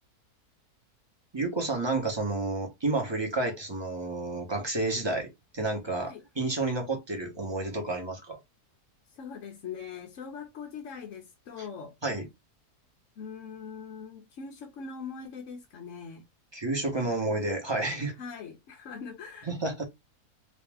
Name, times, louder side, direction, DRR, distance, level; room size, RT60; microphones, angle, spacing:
voice 1, 1.3-8.4 11.6-11.7 12.0-12.3 16.5-18.1 19.5-19.8, right 2 dB, 20° right, 1.0 m, -30 dB
voice 2, 9.1-11.9 13.2-16.3 17.0-17.3 18.1-19.5, left 6 dB, 60° left, 0.9 m, -42 dB
3.1 x 2.8 x 3.4 m
omnidirectional pair, 1.7 m